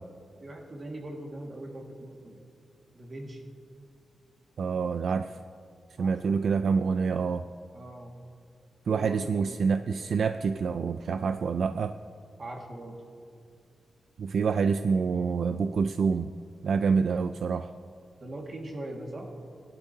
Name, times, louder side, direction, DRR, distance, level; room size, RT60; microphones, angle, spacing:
voice 1, 0.4-2.4 2.9-3.4 6.0-6.4 7.7-8.1 8.9-9.6 12.4-13.0 18.2-19.3, right 1 dB, 40° right, 1 dB, 1.8 m, -41 dB
voice 2, 4.6-5.4 6.0-7.5 8.9-12.0 14.2-16.3 16.6-17.7, right 5 dB, 70° right, 10 dB, 0.3 m, -27 dB
18.5 x 12.0 x 2.8 m, 2.3 s
wide cardioid pair, 115°, 0 cm